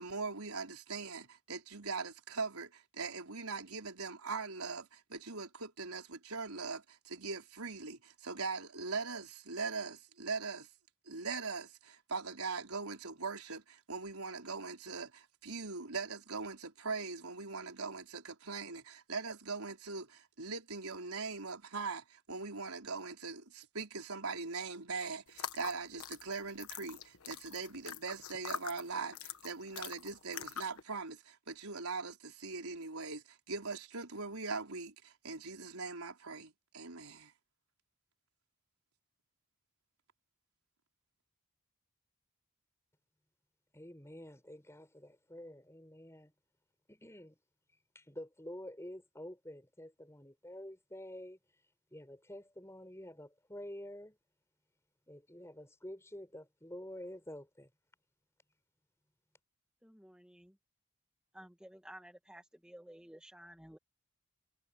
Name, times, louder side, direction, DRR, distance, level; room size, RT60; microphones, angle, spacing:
voice 1, 0.0-10.7 11.1-37.3, right 4 dB, 80° right, 4.3 m, -41 dB
sound 1, 25.3-30.8, left 8 dB, 75° left, 1.2 m, -44 dB
voice 2, 43.7-46.3 46.9-47.4 47.9-51.4 51.9-54.2 55.1-57.7, left 1 dB, 10° left, 7.1 m, -49 dB
voice 3, 59.8-60.6 61.3-63.8, equal, 5° right, 1.8 m, -54 dB
head